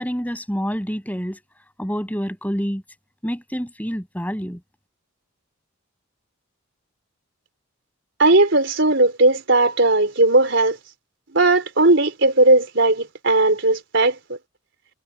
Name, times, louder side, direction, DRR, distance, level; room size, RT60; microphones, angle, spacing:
voice 1, 0.0-1.4 1.8-2.8 3.2-4.6, equal, 10° left, 7.2 m, -27 dB
voice 2, 8.2-10.8 11.3-14.1, right 2 dB, 60° right, 4.7 m, -17 dB
head